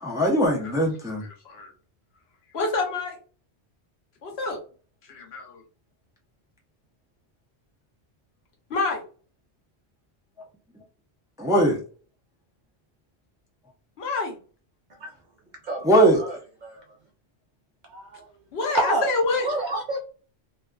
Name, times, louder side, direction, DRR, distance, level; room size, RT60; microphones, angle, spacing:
voice 1, 0.0-1.3 11.4-11.8 15.8-16.3, right 1 dB, 5° right, -1 dB, 0.4 m, -20 dB
voice 2, 1.2-1.7 2.5-3.2 4.2-4.6 5.1-5.6 8.7-9.0 14.0-14.4 18.5-19.5, left 3 dB, 70° left, 2 dB, 1.0 m, -27 dB
voice 3, 16.2-16.9 17.9-18.2 18.7-19.1 19.4-20.0, right 2 dB, 55° right, 0 dB, 0.5 m, -28 dB
2.6 x 2.3 x 2.2 m, 0.38 s
omnidirectional pair, 1.1 m